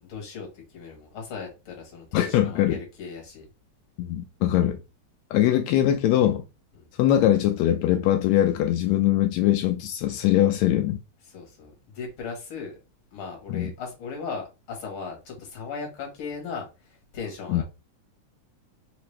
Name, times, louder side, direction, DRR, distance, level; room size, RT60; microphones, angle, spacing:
voice 1, 0.0-3.5 6.8-6.9 11.3-12.7 13.1-17.6, left 5 dB, 50° left, 2.2 m, -37 dB
voice 2, 2.1-2.8 4.0-4.8 5.3-6.4 7.0-11.0 13.5-13.7 17.5-17.6, left 12 dB, 85° left, 1.5 m, -22 dB
5.0 x 2.9 x 3.2 m
omnidirectional pair, 3.5 m